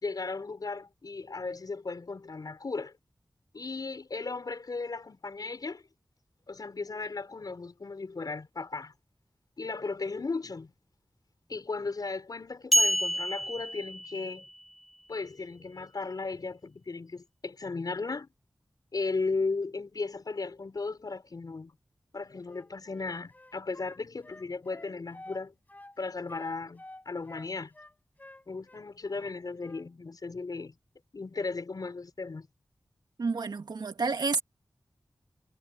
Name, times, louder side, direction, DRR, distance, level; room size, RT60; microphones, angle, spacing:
voice 1, 0.0-2.9 3.5-5.8 6.5-8.9 9.6-10.7 11.5-14.5 15.1-18.3 18.9-21.7 22.1-25.5 26.0-27.7 28.5-30.8 31.1-32.5, left 3 dB, 65° left, 5.6 m, -36 dB
sound 1, 12.7-14.6, equal, ahead, 1.6 m, -27 dB
Wind instrument woodwind instrument, 22.4-25.4 25.7-26.0 26.3-28.8 29.1-29.9, left 1 dB, 25° left, 7.7 m, -50 dB
voice 2, 33.2-34.4, right 4 dB, 85° right, 2.2 m, -29 dB
wide cardioid pair, 70°, 7 cm